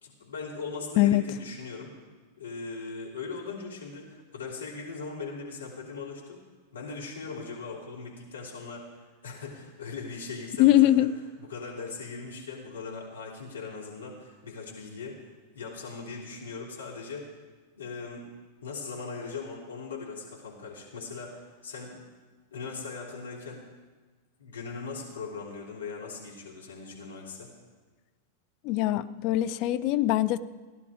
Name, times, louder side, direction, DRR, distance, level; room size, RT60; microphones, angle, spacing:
voice 1, 0.0-1.9 2.4-6.4 6.7-11.1 11.4-17.3 17.7-18.3 18.6-22.0 22.5-23.6 24.4-27.5, left 4 dB, 70° left, -3 dB, 3.3 m, -39 dB
voice 2, 10.6-11.1 28.6-30.4, left 14 dB, 45° left, 12 dB, 0.5 m, -22 dB
16.5 x 11.0 x 5.0 m, 1.4 s
figure-of-eight pair, 90°, 0 cm